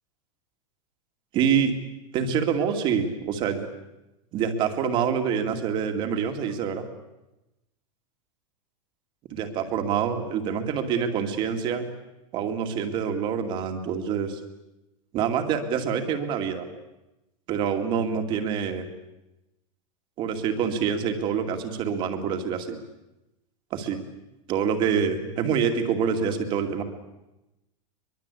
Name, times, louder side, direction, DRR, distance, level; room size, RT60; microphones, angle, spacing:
voice 1, 1.3-1.8 2.1-3.7 4.3-6.9 9.3-11.9 12.3-14.4 15.1-16.7 17.5-18.8 20.2-22.8 23.7-24.1 24.5-26.8, right 7 dB, 25° right, 6 dB, 2.4 m, -26 dB
24.0 x 22.5 x 8.4 m, 0.96 s
supercardioid pair, 170°, 18 cm